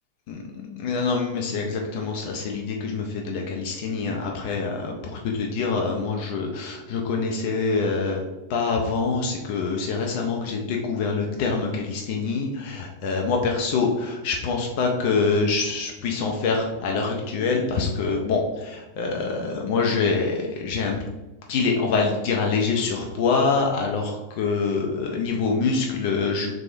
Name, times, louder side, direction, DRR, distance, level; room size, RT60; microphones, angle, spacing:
voice 1, 0.3-8.2 8.5-21.0 21.5-26.5, left 4 dB, 45° left, 1 dB, 0.5 m, -25 dB
3.4 x 3.4 x 2.6 m, 1.1 s
figure-of-eight pair, 90°, 0 cm